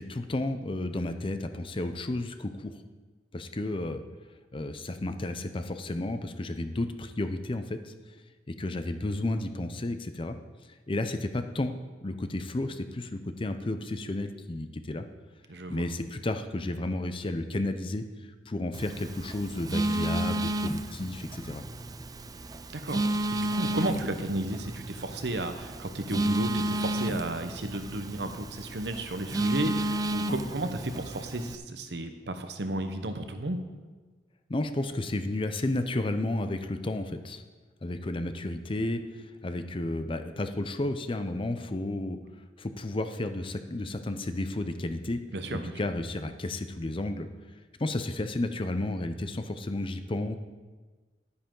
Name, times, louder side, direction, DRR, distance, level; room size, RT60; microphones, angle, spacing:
voice 1, 0.0-2.8 3.3-4.0 4.5-7.9 8.5-10.4 10.9-11.7 12.0-15.1 15.7-18.0 18.5-21.6 34.5-37.4 37.8-42.2 42.6-45.2 45.5-47.3 47.8-50.4, left 1 dB, 30° left, 8 dB, 0.6 m, -32 dB
voice 2, 15.5-15.8 22.7-33.6 45.3-45.8, right 1 dB, 70° right, 8 dB, 1.0 m, -33 dB
Telephone, 18.7-31.6, right 1 dB, 20° right, 0.4 m, -32 dB
11.5 x 9.8 x 3.8 m, 1.3 s
head